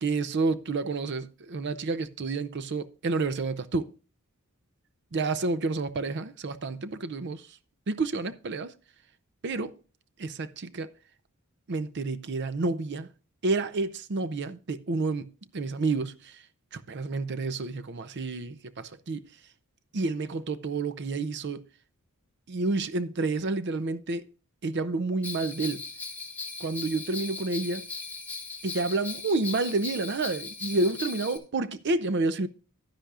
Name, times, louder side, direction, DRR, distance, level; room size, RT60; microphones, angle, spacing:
voice 1, 0.0-3.9 5.1-7.5 7.9-8.7 9.4-9.7 10.2-10.9 11.7-13.1 13.4-16.4 16.7-19.2 19.9-21.6 22.5-24.2 24.6-25.8 26.6-27.9 28.6-32.5, right 3 dB, 55° right, 0.6 m, -29 dB
Bell, 25.2-31.4, left 4 dB, 10° left, 1.5 m, -38 dB
11.5 x 10.0 x 2.4 m
head